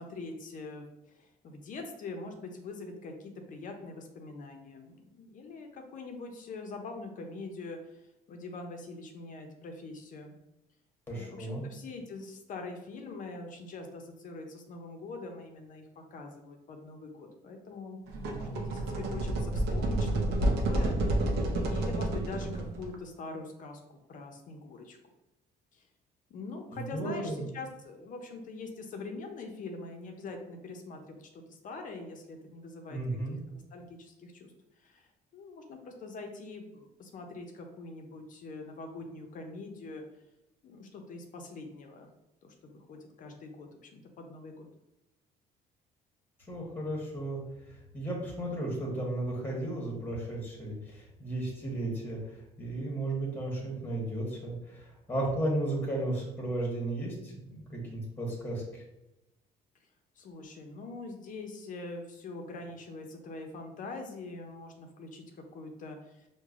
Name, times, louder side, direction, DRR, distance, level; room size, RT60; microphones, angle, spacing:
voice 1, 0.0-10.3 11.1-21.0 21.7-23.8 24.1-25.0 25.7-25.9 26.3-33.2 33.5-34.5 34.8-40.0 40.6-42.1 42.4-44.7 60.2-66.3, left 3 dB, 50° left, 4 dB, 0.5 m, -43 dB
voice 2, 11.1-11.6 26.7-27.4 32.9-33.4 46.5-47.4 47.9-52.2 52.6-58.8, right 1 dB, 10° left, -2 dB, 1.0 m, -34 dB
sound 1, 18.1-23.0, right 1 dB, 75° right, 0.6 m, -30 dB
4.7 x 2.1 x 2.4 m, 0.91 s
cardioid pair, 110°, 17 cm